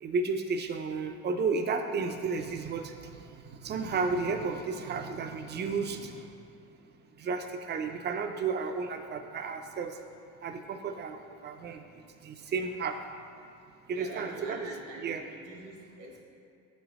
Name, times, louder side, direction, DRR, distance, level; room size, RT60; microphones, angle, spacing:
voice 1, 0.0-3.2 3.5-6.3 7.2-9.9 10.4-11.8 12.2-13.0 13.9-14.6 15.0-15.2, right 4 dB, 35° right, 6 dB, 0.4 m, -32 dB
voice 2, 13.9-16.2, right 2 dB, 80° right, -1 dB, 1.2 m, -45 dB
5.4 x 5.1 x 3.6 m, 2.5 s
cardioid pair, 110°, 31 cm